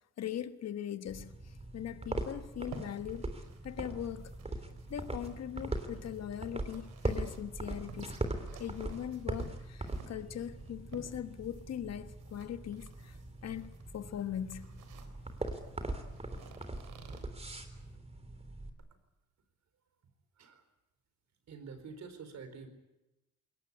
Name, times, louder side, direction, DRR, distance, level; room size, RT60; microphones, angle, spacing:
voice 1, 0.2-3.3 3.6-4.3 4.9-8.2 8.6-13.2 13.4-14.8, left 10 dB, 60° left, 1.4 m, -40 dB
sound 1, 1.1-18.7, right 2 dB, 20° right, 3.4 m, -41 dB
sound 2, 2.5-17.2, right 6 dB, 85° right, 3.7 m, -55 dB
voice 2, 20.3-20.7 21.5-22.7, right 5 dB, 65° right, 4.6 m, -47 dB
22.0 x 19.0 x 9.8 m
cardioid pair, 90°, 30 cm